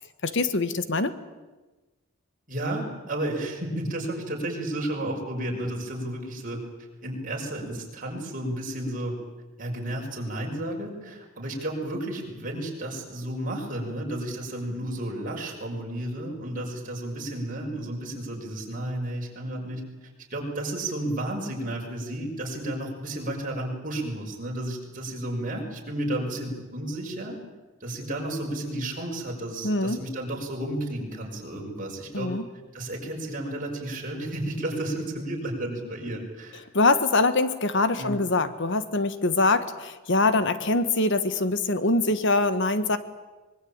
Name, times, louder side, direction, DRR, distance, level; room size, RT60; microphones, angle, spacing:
voice 1, 0.2-1.1 29.6-30.0 32.1-32.4 36.7-43.0, left 2 dB, 60° left, 11 dB, 1.4 m, -23 dB
voice 2, 2.5-6.6 7.0-9.2 9.6-19.8 20.3-27.4 27.8-32.3 32.7-36.6 37.9-38.2, right 1 dB, 40° right, 0 dB, 6.1 m, -32 dB
24.0 x 22.5 x 8.9 m, 1.2 s
head